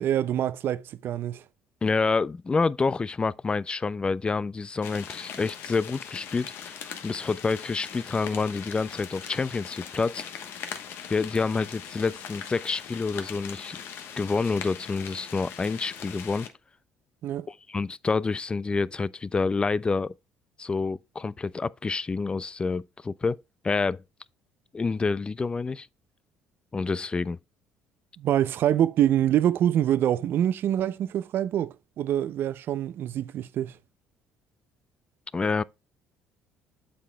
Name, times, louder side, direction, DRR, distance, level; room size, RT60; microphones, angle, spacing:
voice 1, 0.0-1.4 17.2-17.5 28.2-33.8, right 11 dB, 60° right, 0.5 m, -25 dB
voice 2, 1.8-6.8 7.0-10.3 11.1-13.8 14.2-16.5 17.5-20.1 20.6-23.4 23.6-24.0 24.7-25.9 26.7-27.4 35.3-35.6, left 4 dB, 25° left, 0.3 m, -28 dB
sound 1, 4.8-16.5, left 8 dB, 65° left, 1.0 m, -41 dB
8.5 x 7.4 x 2.2 m
supercardioid pair, 70°, 4 cm